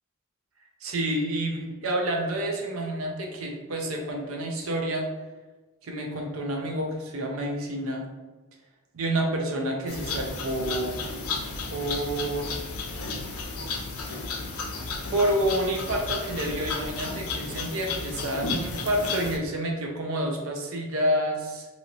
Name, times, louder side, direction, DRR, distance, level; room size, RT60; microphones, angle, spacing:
voice 1, 0.8-5.1 5.8-8.1 8.9-11.0 11.7-12.5 15.1-21.7, right 1 dB, 70° right, 1 dB, 0.6 m, -29 dB
sound 1, 9.9-19.4, left 4 dB, 80° left, 0.5 m, -33 dB
2.9 x 2.7 x 2.7 m, 1.2 s
head